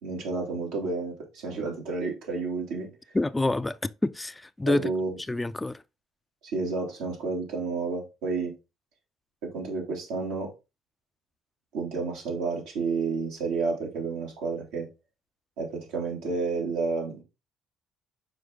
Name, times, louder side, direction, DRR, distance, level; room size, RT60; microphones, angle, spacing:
voice 1, 0.0-2.9 4.7-5.1 6.4-8.5 9.4-10.5 11.7-14.9 15.6-17.2, right 4 dB, 85° right, 3.0 m, -30 dB
voice 2, 3.1-4.9 5.3-5.8, left 2 dB, 15° left, 0.4 m, -27 dB
6.1 x 4.5 x 3.9 m
supercardioid pair, 85°, 0 cm